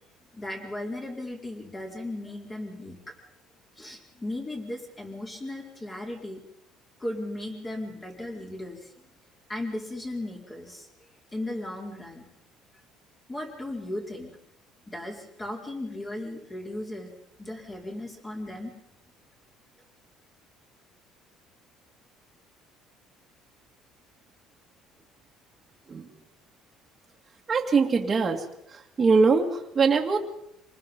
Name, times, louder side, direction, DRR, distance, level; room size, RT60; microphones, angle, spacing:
voice 1, 0.3-3.0 3.8-6.4 7.0-8.9 9.5-10.9 11.3-12.3 13.3-14.3 14.9-17.1 17.4-18.7, left 1 dB, 15° left, 0 dB, 4.4 m, -36 dB
voice 2, 27.5-28.4 28.7-30.2, right 4 dB, 25° right, 0 dB, 2.3 m, -22 dB
26.5 x 20.0 x 5.4 m, 0.78 s
cardioid pair, 145°, 0 cm